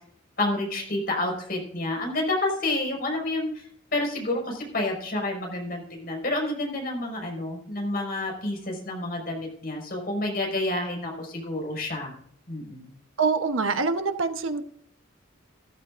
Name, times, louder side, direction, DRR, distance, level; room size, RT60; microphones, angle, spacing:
voice 1, 0.4-12.1 12.5-12.9, left 2 dB, 45° left, 0 dB, 5.3 m, -29 dB
voice 2, 13.2-14.6, right 4 dB, 80° right, 7 dB, 1.1 m, -25 dB
15.0 x 14.5 x 2.6 m, 0.65 s
head